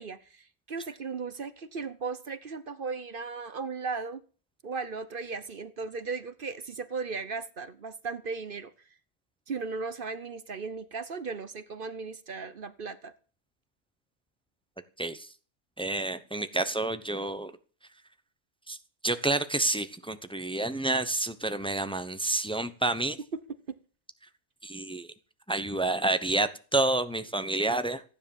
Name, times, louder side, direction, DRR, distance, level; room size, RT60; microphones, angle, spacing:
voice 1, 0.0-4.2 4.6-8.7 9.5-13.1 23.7-23.8, right 4 dB, 45° right, 14 dB, 0.9 m, -36 dB
voice 2, 15.0-15.3 15.8-17.5 18.7-18.8 19.0-23.2 24.6-25.1 25.5-28.0, right 2 dB, 5° left, 11 dB, 0.7 m, -29 dB
15.0 x 10.0 x 7.3 m, 0.40 s
omnidirectional pair, 1.5 m